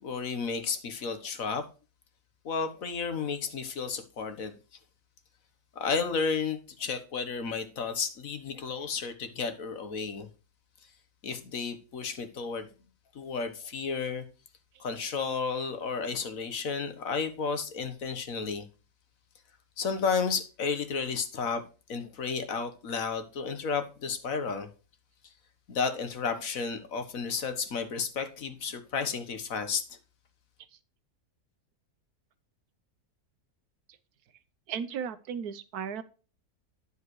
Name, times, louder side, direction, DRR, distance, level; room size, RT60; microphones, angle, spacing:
voice 1, 0.0-1.6 2.4-4.5 5.7-10.3 11.2-12.7 13.1-14.2 14.8-18.6 19.8-21.6 21.9-24.7 25.7-29.8, left 5 dB, 65° left, 1.6 m, -32 dB
voice 2, 34.7-36.0, right 7 dB, 85° right, 1.3 m, -35 dB
9.7 x 7.4 x 3.1 m
omnidirectional pair, 1.6 m